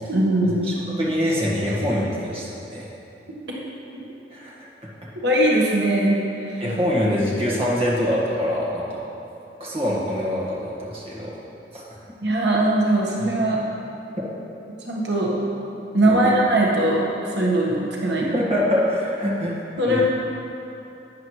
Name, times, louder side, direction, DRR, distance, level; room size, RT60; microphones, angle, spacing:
voice 1, 0.1-0.7 5.2-6.2 6.4-6.6 12.2-13.6 14.9-15.3 15.9-17.0 17.3-18.4 19.8-20.0, right 1 dB, 75° right, -3 dB, 1.4 m, -20 dB
voice 2, 0.7-2.9 4.3-4.5 6.6-9.0 9.6-11.4 11.7-11.8 16.0-16.3 18.2-19.6 19.8-20.0, equal, 35° right, -5 dB, 1.6 m, -24 dB
11.5 x 9.0 x 3.2 m, 2.9 s
head